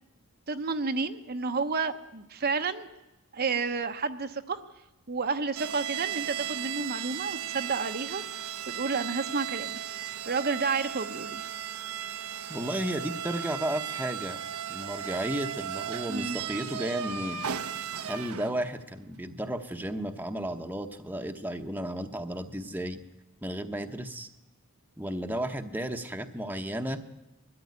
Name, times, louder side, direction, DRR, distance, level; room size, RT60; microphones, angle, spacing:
voice 1, 0.5-2.9 3.3-4.6 5.1-8.4 8.7-9.8 10.3-11.4 16.1-16.4, right 4 dB, 45° right, 7 dB, 0.8 m, -31 dB
sound 1, 5.5-18.8, right 9 dB, 90° right, 1.1 m, -36 dB
voice 2, 12.5-14.4 14.7-17.4 18.1-23.0 23.4-24.3 25.0-27.0, right 1 dB, 10° right, 6 dB, 0.9 m, -33 dB
20.5 x 13.5 x 9.5 m, 0.99 s
head